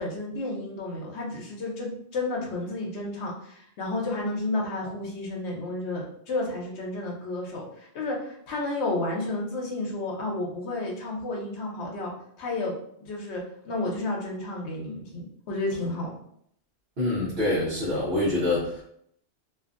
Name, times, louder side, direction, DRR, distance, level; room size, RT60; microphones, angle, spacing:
voice 1, 0.0-12.1 12.4-12.7 13.0-16.1, left 2 dB, 85° left, -2 dB, 1.0 m, -31 dB
voice 2, 17.0-18.8, left 2 dB, 60° right, -7 dB, 1.0 m, -25 dB
2.6 x 2.5 x 2.4 m, 0.68 s
omnidirectional pair, 1.1 m